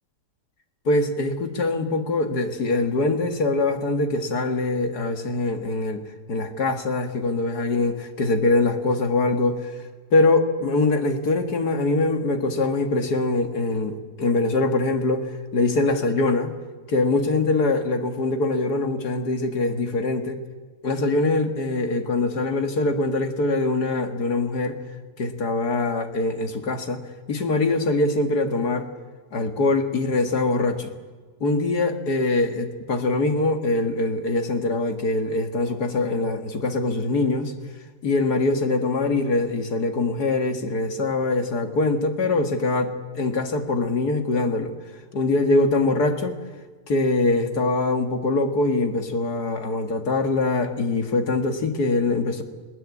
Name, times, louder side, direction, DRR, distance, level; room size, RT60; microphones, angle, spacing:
voice 1, 0.9-9.7 10.1-16.5 16.9-20.4 20.8-24.8 25.2-27.0 27.3-28.9 29.3-30.9 31.4-37.5 38.0-44.7 45.1-46.4 46.9-52.4, left 2 dB, 75° left, 7 dB, 2.5 m, -23 dB
21.0 x 20.0 x 9.8 m, 1.4 s
omnidirectional pair, 1.7 m